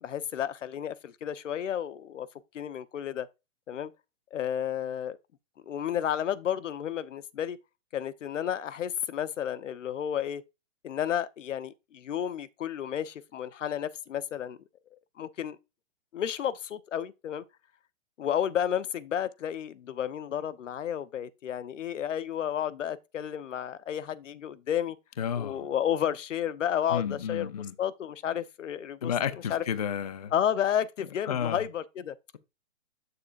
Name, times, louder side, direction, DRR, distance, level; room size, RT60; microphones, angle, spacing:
voice 1, 0.0-2.3 2.5-3.3 3.7-3.9 4.3-5.2 5.7-7.6 7.9-10.4 10.8-14.6 15.2-15.6 16.1-17.4 18.2-25.0 25.4-27.5 27.8-29.1 29.5-29.6 30.3-32.2, left 9 dB, 85° left, 1.0 m, -31 dB
voice 2, 25.2-25.7 26.9-27.7 29.0-30.3 31.3-31.6, left 8 dB, 35° left, 0.5 m, -31 dB
8.7 x 6.8 x 2.5 m
hypercardioid pair, 175°, 36 cm